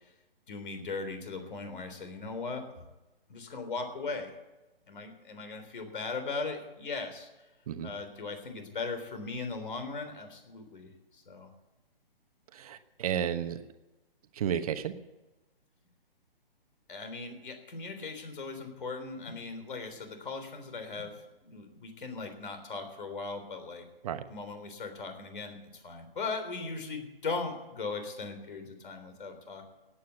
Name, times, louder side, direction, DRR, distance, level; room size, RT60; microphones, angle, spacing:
voice 1, 0.5-2.8 3.3-4.3 4.9-7.3 7.8-11.5 16.9-23.9 24.3-29.7, left 4 dB, 60° left, 7 dB, 3.7 m, -38 dB
voice 2, 12.5-13.6 14.3-14.9 24.0-24.2, right 9 dB, 40° right, 10 dB, 1.1 m, -32 dB
17.0 x 9.2 x 8.2 m, 1.1 s
figure-of-eight pair, 135°, 29 cm